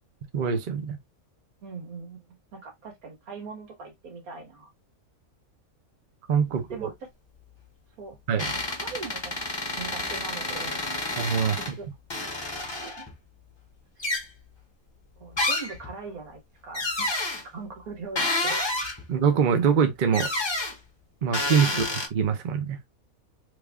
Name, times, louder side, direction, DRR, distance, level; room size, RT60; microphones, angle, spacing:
voice 1, 0.3-1.0 6.3-6.9 8.3-8.4 11.2-11.6 19.1-20.3 21.2-21.8 22.1-22.8, right 6 dB, 45° right, 0.7 m, -24 dB
voice 2, 1.6-2.2 2.5-4.7 6.5-6.9 8.0-9.5 9.8-11.1 11.6-11.8 12.8-13.1 14.0-14.1 15.2-17.3 17.5-18.6 21.7-21.9, right 4 dB, 90° right, 1.7 m, -41 dB
sound 1, 8.4-11.7 12.1-13.1 14.0-14.3 15.4-15.9 16.7-17.4 18.1-19.0 20.1-20.7 21.3-22.1, left 2 dB, 20° left, 0.9 m, -29 dB
3.4 x 2.3 x 3.5 m
omnidirectional pair, 1.5 m